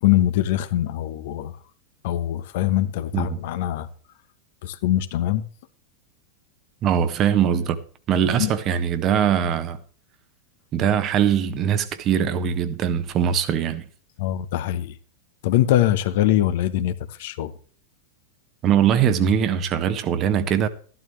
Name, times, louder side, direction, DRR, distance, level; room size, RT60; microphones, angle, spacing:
voice 1, 0.0-1.5 2.0-3.9 4.6-5.4 8.4-8.5 14.2-14.9 15.4-17.5, left 13 dB, 50° left, 1.0 m, -22 dB
voice 2, 6.8-7.8 8.1-9.8 10.7-13.9 18.6-20.7, right 8 dB, 35° right, 1.3 m, -21 dB
14.0 x 12.0 x 3.3 m
figure-of-eight pair, 90°, 0 cm